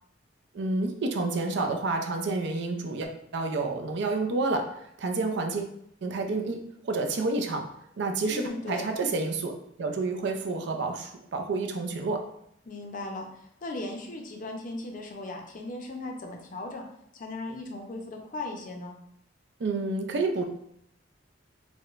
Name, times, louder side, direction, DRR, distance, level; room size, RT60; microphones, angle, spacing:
voice 1, 0.5-5.7 6.0-7.6 8.0-9.5 9.8-12.2 19.6-20.4, right 3 dB, 65° right, 4 dB, 0.4 m, -29 dB
voice 2, 8.3-8.8 12.7-13.3 13.6-16.9 17.1-18.9, left 2 dB, 45° left, 2 dB, 0.5 m, -37 dB
4.7 x 2.1 x 2.4 m, 0.73 s
head